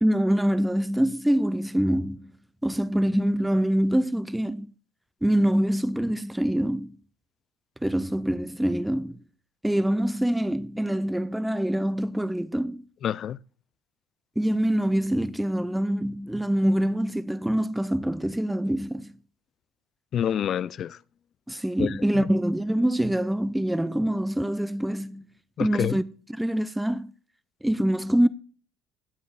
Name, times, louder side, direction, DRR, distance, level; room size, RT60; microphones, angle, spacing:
voice 1, 0.0-2.3 2.6-4.7 5.2-6.9 7.8-9.2 9.6-12.8 14.4-19.1 21.5-25.3 25.6-26.0 26.3-27.1 27.6-28.3, right 1 dB, 5° right, 0.5 m, -25 dB
voice 2, 13.0-13.4 20.1-21.0 21.8-22.2 25.6-26.0, left 9 dB, 45° left, 0.4 m, -28 dB
16.0 x 9.1 x 2.5 m
supercardioid pair, 105°, 0 cm